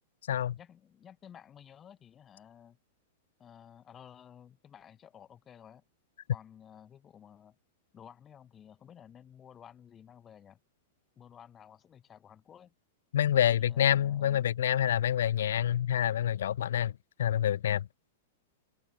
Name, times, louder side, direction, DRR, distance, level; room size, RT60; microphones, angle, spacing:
voice 1, 0.6-2.8 3.4-5.8 6.3-7.6 7.9-10.6 11.2-12.7 13.3-14.5, left 9 dB, 25° left, 7.3 m, -53 dB
voice 2, 13.1-16.9 17.2-17.9, left 10 dB, 80° left, 0.4 m, -27 dB
hypercardioid pair, 135°, 0 cm